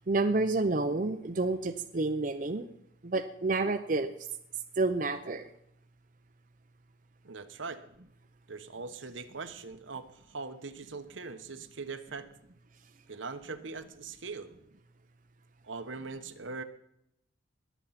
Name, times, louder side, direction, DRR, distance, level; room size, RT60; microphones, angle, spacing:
voice 1, 0.1-2.7 3.0-4.1 4.8-5.5, right 3 dB, 40° right, 8 dB, 0.6 m, -29 dB
voice 2, 7.2-7.8 8.5-12.3 13.1-14.5 15.6-16.6, right 4 dB, 80° right, 9 dB, 1.1 m, -41 dB
21.0 x 8.2 x 5.8 m, 0.79 s
head